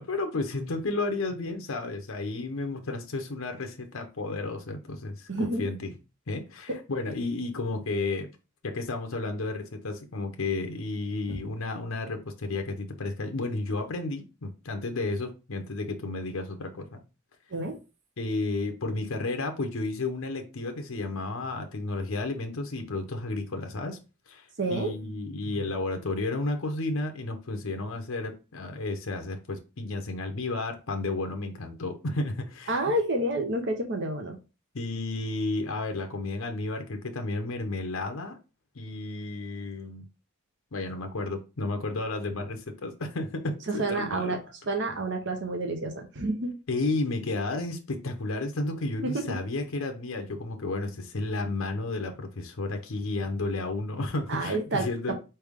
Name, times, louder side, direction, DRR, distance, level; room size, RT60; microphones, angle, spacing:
voice 1, 0.0-5.9 6.3-8.3 8.6-17.0 18.2-24.0 24.3-32.8 34.7-38.4 38.7-40.1 40.7-44.4 46.7-55.1, left 2 dB, 70° left, 5 dB, 0.7 m, -32 dB
voice 2, 5.3-5.6 6.7-6.8 11.3-11.4 17.5-17.8 24.6-25.1 32.7-34.4 43.7-44.4 44.7-46.5 49.0-49.4 54.3-54.9, right 2 dB, 55° right, 4 dB, 0.9 m, -29 dB
4.4 x 3.3 x 3.5 m, 0.31 s
head